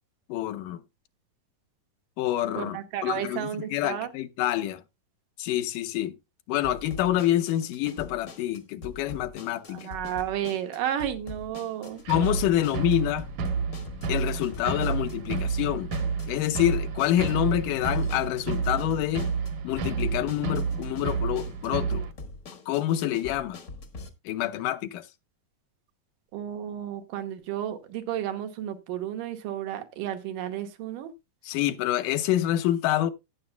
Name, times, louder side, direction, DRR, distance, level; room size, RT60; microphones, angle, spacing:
voice 1, 0.3-0.8 2.2-4.8 5.4-6.1 6.5-9.9 12.1-13.3 14.1-15.9 16.3-19.3 19.6-22.1 22.7-23.6 24.3-25.1 31.4-33.1, left 13 dB, 80° left, 2.3 m, -27 dB
voice 2, 2.6-4.1 9.7-12.0 26.3-31.1, right 10 dB, 90° right, 2.9 m, -32 dB
sound 1, 6.6-24.1, left 3 dB, 50° left, 1.0 m, -44 dB
sound 2, 12.1-22.1, right 5 dB, 70° right, 2.7 m, -30 dB
17.0 x 6.9 x 2.2 m
omnidirectional pair, 3.8 m